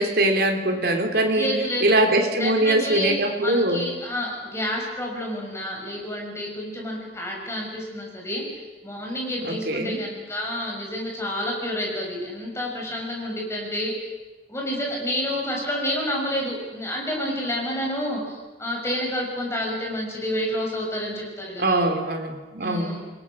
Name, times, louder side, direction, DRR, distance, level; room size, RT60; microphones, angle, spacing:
voice 1, 0.0-3.9 9.4-10.0 21.6-23.0, right 1 dB, 55° right, 4 dB, 3.3 m, -22 dB
voice 2, 1.3-2.0 2.4-3.2 3.4-13.9 14.5-21.8 22.6-23.0, equal, 15° left, -1 dB, 6.5 m, -29 dB
29.0 x 21.5 x 6.4 m, 1.2 s
head